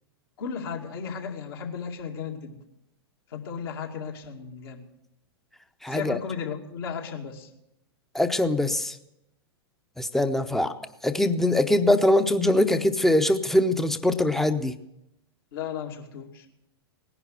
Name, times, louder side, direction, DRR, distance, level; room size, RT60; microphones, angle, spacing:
voice 1, 0.4-2.6 3.3-4.8 5.9-7.5 15.5-16.5, left 6 dB, 60° left, 1 dB, 2.4 m, -35 dB
voice 2, 5.8-6.2 8.1-9.0 10.0-10.7 11.0-14.7, left 1 dB, ahead, 10 dB, 0.8 m, -22 dB
18.0 x 11.0 x 6.6 m, 0.85 s
hypercardioid pair, 105°, 13 cm